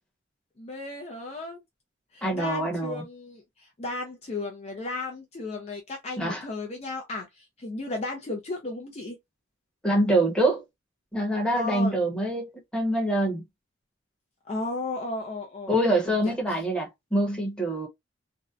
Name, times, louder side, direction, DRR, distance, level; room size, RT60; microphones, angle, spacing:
voice 1, 0.6-1.6 2.1-9.2 11.6-12.0 14.5-15.8 16.2-16.3, left 2 dB, 35° left, 0.4 m, -34 dB
voice 2, 2.2-3.0 6.2-6.5 9.8-10.6 11.1-13.4 15.7-17.9, right 1 dB, 5° left, 0.8 m, -25 dB
2.6 x 2.1 x 2.3 m
head